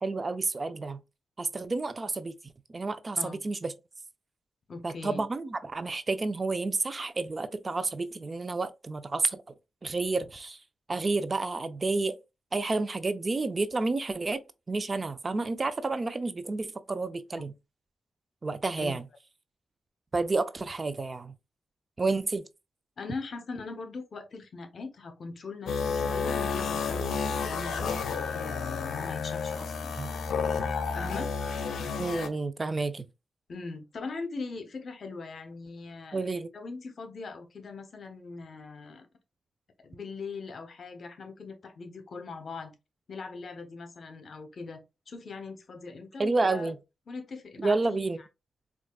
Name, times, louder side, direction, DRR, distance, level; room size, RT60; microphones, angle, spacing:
voice 1, 0.0-1.0 1.4-2.3 2.7-3.7 4.8-9.4 9.8-10.6 10.9-12.2 12.5-17.5 18.4-19.0 20.1-21.3 22.0-22.4 30.0-30.1 32.0-33.0 36.1-36.5 46.2-46.8 47.6-48.2, right 3 dB, 40° right, 0.5 m, -30 dB
voice 2, 4.7-5.2 18.8-19.0 23.0-29.9 30.9-31.3 33.5-39.1 39.8-42.7 43.1-44.8 45.1-46.7 47.1-48.3, left 4 dB, 65° left, 0.9 m, -41 dB
sound 1, 25.7-32.3, left 5 dB, 80° left, 0.6 m, -31 dB
4.6 x 2.5 x 2.4 m
cardioid pair, 60°, 0 cm